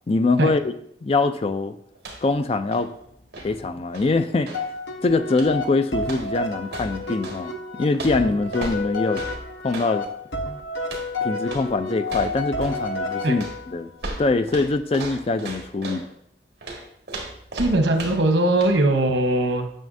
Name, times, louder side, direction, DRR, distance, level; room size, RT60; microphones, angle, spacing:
voice 1, 0.1-0.7 1.0-1.8 2.2-2.9 3.4-4.6 5.0-9.2 9.6-10.1 11.2-13.9 14.2-16.1, left 3 dB, 35° left, 10 dB, 0.4 m, -23 dB
sound 1, 1.9-2.4 2.6-4.7 5.3-5.7 6.0-7.4 7.9-10.0 10.8-11.1 11.4-11.7 12.0-12.9 13.4-16.1 16.6-18.3 18.6-18.8, right 2 dB, 60° right, 1.7 m, -36 dB
sound 2, 4.5-13.8, left 2 dB, 70° left, 0.9 m, -31 dB
voice 2, 17.5-19.7, right 1 dB, 90° right, 6 dB, 1.0 m, -20 dB
9.2 x 6.4 x 2.6 m, 0.72 s
head